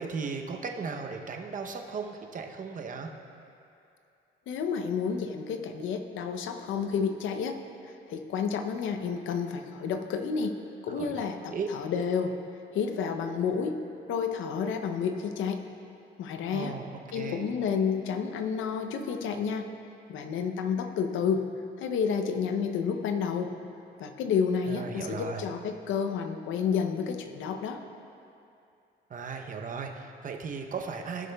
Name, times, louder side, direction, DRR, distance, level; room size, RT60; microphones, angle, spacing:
voice 1, 0.0-3.1 10.9-11.7 16.5-17.5 24.7-25.4 29.1-31.3, right 5 dB, 40° right, 4 dB, 0.7 m, -36 dB
voice 2, 4.5-7.6 8.1-10.5 10.8-12.3 12.7-13.8 14.1-15.7 16.2-16.8 17.1-19.7 20.1-21.5 21.8-23.6 24.0-27.8, left 6 dB, 80° left, 6 dB, 0.6 m, -30 dB
15.5 x 6.5 x 2.3 m, 2.6 s
cardioid pair, 90°, 20 cm